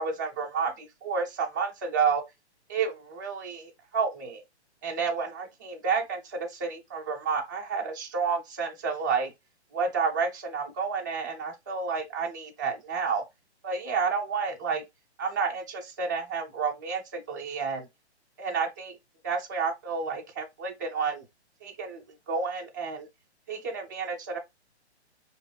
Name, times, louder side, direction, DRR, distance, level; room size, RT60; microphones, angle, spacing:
voice 1, 0.0-2.2 2.7-4.4 4.8-9.3 9.7-13.2 13.6-14.8 15.2-17.9 18.4-18.9 19.2-21.2 21.6-23.1 23.5-24.4, right 5 dB, 15° right, 0.6 m, -30 dB
5.1 x 2.6 x 3.2 m
hypercardioid pair, 165°, 34 cm